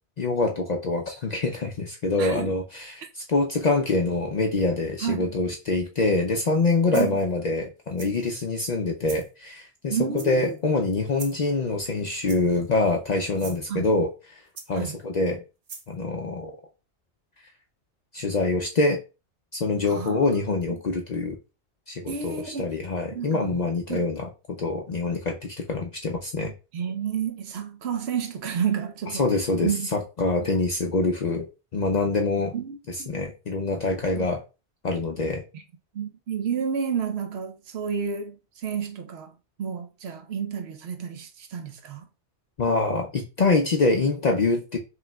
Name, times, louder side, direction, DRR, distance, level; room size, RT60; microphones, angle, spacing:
voice 1, 0.2-14.1 14.7-15.4 15.9-16.6 18.1-19.0 19.5-21.4 21.9-26.5 29.2-31.5 31.7-32.5 33.1-34.4 34.8-35.4 42.6-44.8, left 3 dB, 50° left, 0.5 m, -25 dB
voice 2, 2.2-2.5 5.0-5.3 6.9-7.2 9.9-10.5 13.7-13.9 14.7-15.0 19.8-20.4 22.1-22.7 23.1-23.6 23.9-24.1 26.7-29.2 29.6-29.9 32.5-33.2 34.2-34.3 35.5-35.6 35.9-42.1, right 7 dB, 70° right, 0.9 m, -30 dB
sound 1, 6.4-6.6 6.9-7.3 8.0-8.4 9.0-9.3 10.2-10.6 11.1-11.5 12.3-12.7 13.3-13.6 14.6-15.0 15.7-15.9, right 5 dB, 45° right, 0.5 m, -42 dB
5.0 x 3.2 x 2.2 m
omnidirectional pair, 1.2 m